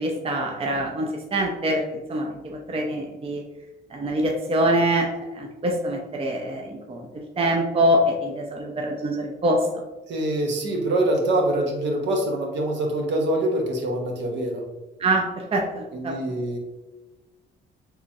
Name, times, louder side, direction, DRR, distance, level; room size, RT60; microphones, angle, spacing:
voice 1, 0.0-1.8 2.1-3.4 3.9-9.7 15.0-16.1, right 1 dB, 30° right, 1 dB, 0.5 m, -24 dB
voice 2, 10.1-14.6 15.9-16.6, right 1 dB, 65° right, 2 dB, 0.9 m, -24 dB
3.8 x 3.0 x 2.6 m, 1.1 s
cardioid pair, 90°, 20 cm